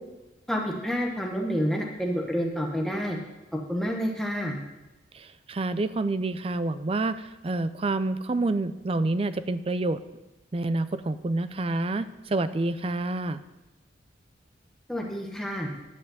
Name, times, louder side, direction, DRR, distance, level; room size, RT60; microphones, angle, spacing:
voice 1, 0.5-3.2 3.5-4.6 14.9-15.7, equal, ahead, 0 dB, 1.2 m, -29 dB
voice 2, 5.1-10.0 10.5-13.4, right 2 dB, 30° right, 13 dB, 0.4 m, -28 dB
10.0 x 5.6 x 7.8 m, 1.1 s
head